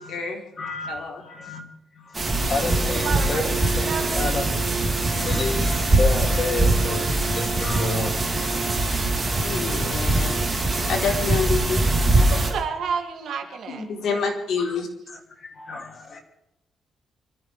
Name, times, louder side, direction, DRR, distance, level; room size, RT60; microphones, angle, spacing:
voice 1, 0.0-0.4 0.9-1.2 9.3-11.8 12.1-12.3 13.7-14.9, left 5 dB, 70° left, 1 dB, 3.9 m, -28 dB
voice 2, 0.6-1.7 1.9-4.5 5.1-8.3 14.6-14.7 15.1-16.2, left 2 dB, 35° left, 2 dB, 3.0 m, -30 dB
sound 1, 2.1-12.5, right 2 dB, 20° right, 3.9 m, -22 dB
voice 3, 2.8-3.5 3.9-4.3 10.8-10.9 12.3-14.3, right 6 dB, 65° right, 3 dB, 2.6 m, -31 dB
25.0 x 14.5 x 3.5 m, 0.86 s
cardioid pair, 165°, 0 cm